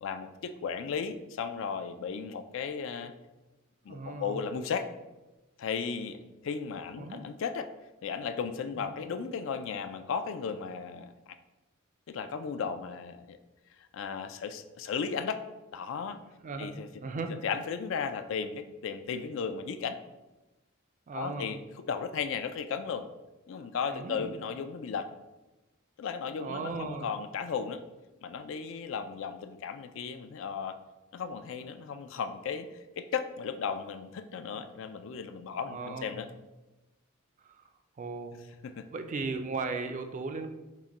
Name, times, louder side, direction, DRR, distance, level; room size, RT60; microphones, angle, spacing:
voice 1, 0.0-3.1 3.8-4.9 5.6-7.7 8.0-11.1 12.1-13.4 13.9-15.4 15.7-16.2 16.6-16.9 17.3-20.0 21.1-21.6 21.9-23.1 23.5-25.1 26.0-27.8 28.2-30.8 31.1-32.7 33.0-36.3 38.6-38.9, left 6 dB, 65° left, 9 dB, 0.3 m, -35 dB
voice 2, 3.9-4.4 7.0-7.2 8.8-8.9 16.4-16.7 17.0-17.4 21.1-21.5 23.9-24.3 26.4-27.1 35.7-36.2 37.4-37.6 38.0-38.4 38.9-40.5, right 4 dB, 35° right, 7 dB, 0.4 m, -37 dB
6.0 x 2.2 x 4.1 m, 1.1 s
head